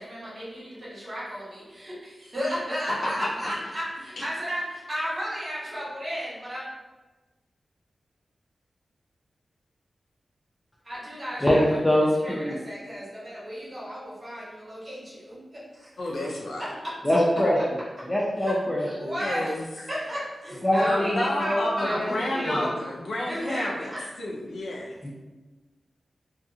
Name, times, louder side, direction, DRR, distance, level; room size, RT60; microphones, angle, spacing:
voice 1, 0.0-6.6 10.8-12.0 12.2-15.9 18.4-18.5 18.8-19.5 19.9-22.7 23.3-24.0, equal, 35° right, -8 dB, 1.2 m, -33 dB
voice 2, 11.4-12.1 12.4-12.6 17.0-17.6 18.0-19.2 20.6-22.7 25.0-25.1, equal, 15° left, -4 dB, 0.4 m, -24 dB
voice 3, 16.0-16.6 19.2-19.7 20.8-23.9 24.2-25.0, left 1 dB, 90° left, -2 dB, 0.5 m, -30 dB
2.3 x 2.3 x 2.7 m, 1.2 s
wide cardioid pair, 110°, 0 cm